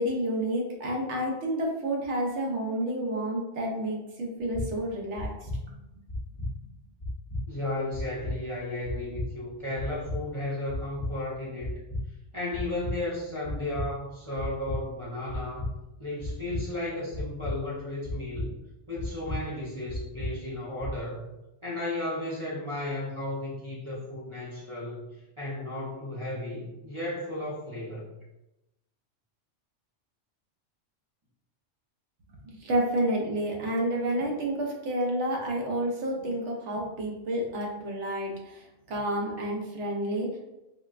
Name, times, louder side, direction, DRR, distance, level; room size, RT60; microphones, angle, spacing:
voice 1, 0.0-5.7 32.5-40.4, right 1 dB, 75° right, -1 dB, 1.0 m, -30 dB
sound 1, 4.4-4.7 5.2-5.6 6.1-6.5 7.0-7.4 7.9-8.3 8.8-9.2 9.8-10.2 10.7-11.1 11.6-12.0 12.5-12.9 13.4-13.8 14.4-14.8 15.3-15.7 16.2-16.6 17.1-17.5 18.0-18.4 19.0-19.4 19.9-20.3 20.8-20.9, left 1 dB, 45° left, 1.0 m, -33 dB
voice 2, 7.5-11.8 12.3-15.7 16.0-18.5 18.9-21.2 21.6-25.1 25.4-28.2, left 1 dB, 35° right, -7 dB, 0.6 m, -34 dB
4.0 x 2.2 x 2.4 m, 0.96 s
omnidirectional pair, 1.2 m